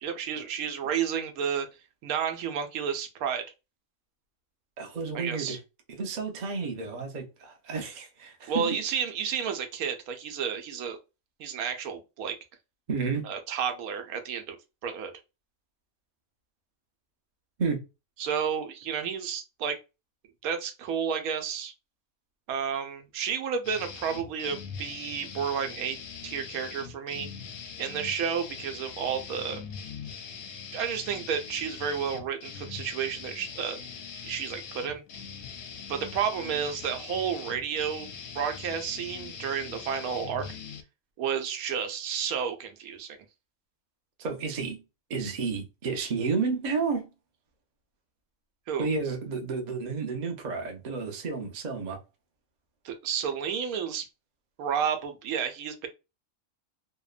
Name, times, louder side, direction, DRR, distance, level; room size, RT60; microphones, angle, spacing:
voice 1, 0.0-1.7 2.0-3.4 5.1-5.6 8.5-11.0 11.4-12.4 13.2-14.6 14.8-15.1 18.2-19.8 20.4-21.7 22.5-26.0 26.2-27.3 27.8-29.6 30.7-33.8 34.2-35.0 35.9-38.1 38.3-40.6 41.2-43.2 48.7-48.9 52.8-54.1 54.6-55.9, right 7 dB, 85° right, 1.1 m, -31 dB
voice 2, 4.8-5.6 6.0-8.8 12.9-13.3 17.6-17.8 44.2-44.8 45.1-47.1 48.8-52.0, right 4 dB, 45° right, 0.5 m, -31 dB
sound 1, 23.6-40.8, left 6 dB, 65° left, 0.7 m, -42 dB
2.8 x 2.1 x 2.3 m
omnidirectional pair, 1.5 m